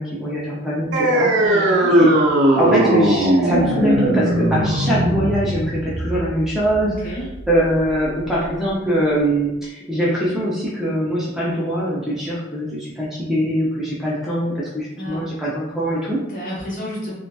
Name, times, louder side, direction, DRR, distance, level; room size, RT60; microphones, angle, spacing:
voice 1, 0.0-2.1 2.5-7.2 7.5-16.2, equal, ahead, -7 dB, 0.4 m, -22 dB
sound 1, 0.9-7.9, right 1 dB, 65° right, 0.5 m, -19 dB
voice 2, 1.4-1.9 6.8-7.2 15.0-15.2 16.3-17.1, equal, 45° left, -7 dB, 0.9 m, -30 dB
2.7 x 2.2 x 2.2 m, 0.95 s
head